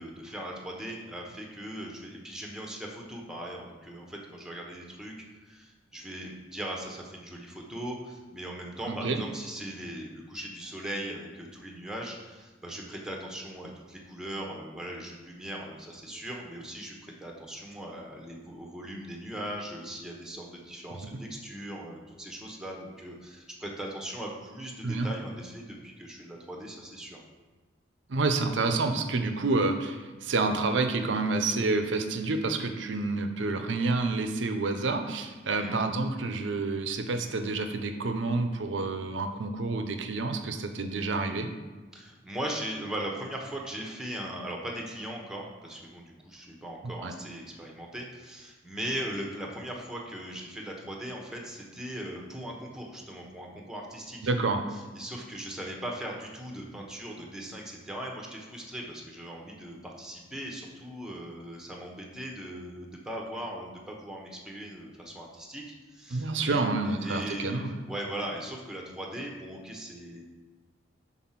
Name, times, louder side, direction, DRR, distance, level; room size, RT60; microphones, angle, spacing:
voice 1, 0.0-5.1 5.4-27.2 35.6-35.8 41.9-54.3 54.7-65.6 65.9-70.3, right 1 dB, 5° right, 0 dB, 0.9 m, -39 dB
voice 2, 8.9-9.2 21.1-21.2 24.8-25.1 28.1-41.5 46.8-47.1 54.2-54.6 66.1-67.8, right 3 dB, 70° right, 6 dB, 0.6 m, -29 dB
6.0 x 4.0 x 5.7 m, 1.3 s
head